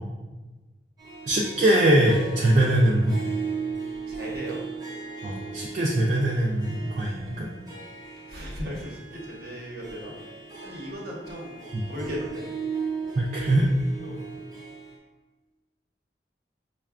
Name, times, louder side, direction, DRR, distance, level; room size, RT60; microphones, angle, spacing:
Harp, 1.0-15.0, right 5 dB, 20° right, 0.8 m, -37 dB
voice 1, 1.3-3.2 5.2-7.5 11.7-11.8 13.2-13.7, right 1 dB, 45° right, -3 dB, 0.4 m, -22 dB
voice 2, 4.1-4.6 8.3-10.1 10.6-12.4 14.0-14.3, equal, 60° right, -3 dB, 0.9 m, -36 dB
5.5 x 2.2 x 2.4 m, 1.2 s
head